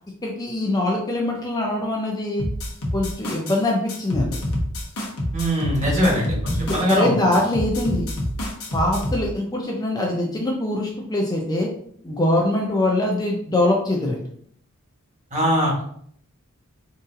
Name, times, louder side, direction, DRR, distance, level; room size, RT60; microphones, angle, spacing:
voice 1, 0.2-2.5 2.9-4.4 6.0-6.2 6.5-8.1 8.7-11.7 12.0-14.3, left 1 dB, 15° left, 0 dB, 0.4 m, -23 dB
sound 1, 2.4-3.6 3.9-7.0 7.3-9.2, equal, 70° left, 0.9 m, -27 dB
voice 2, 5.3-7.1 15.3-15.8, equal, 35° right, -4 dB, 1.3 m, -22 dB
3.9 x 2.6 x 2.6 m, 0.63 s
head